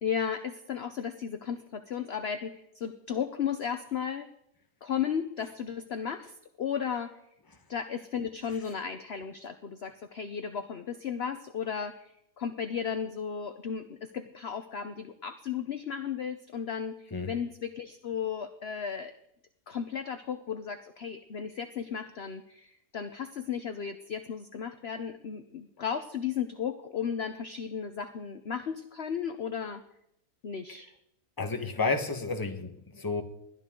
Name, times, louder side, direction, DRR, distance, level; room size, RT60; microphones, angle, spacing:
voice 1, 0.0-4.3 4.8-7.2 7.7-19.1 19.7-29.8 30.4-30.9, left 7 dB, 50° left, 9 dB, 0.9 m, -35 dB
voice 2, 31.4-33.2, left 3 dB, 15° left, 5 dB, 1.2 m, -31 dB
21.0 x 13.0 x 3.8 m, 0.78 s
omnidirectional pair, 1.6 m